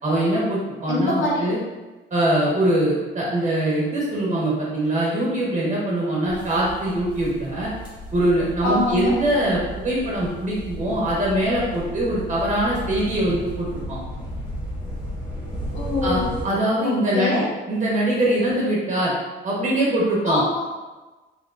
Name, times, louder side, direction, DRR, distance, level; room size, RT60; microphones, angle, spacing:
voice 1, 0.0-1.6 2.1-7.7 8.1-14.0 16.0-19.1 19.4-20.4, right 1 dB, 40° right, -5 dB, 1.4 m, -22 dB
voice 2, 0.9-1.5 8.6-9.2 15.7-16.3 16.8-17.5 20.3-20.7, left 2 dB, 75° left, -4 dB, 1.3 m, -24 dB
sound 1, 6.3-16.4, equal, 20° left, 1.4 m, -34 dB
5.0 x 3.1 x 2.5 m, 1.2 s
cardioid pair, 90°, 20 cm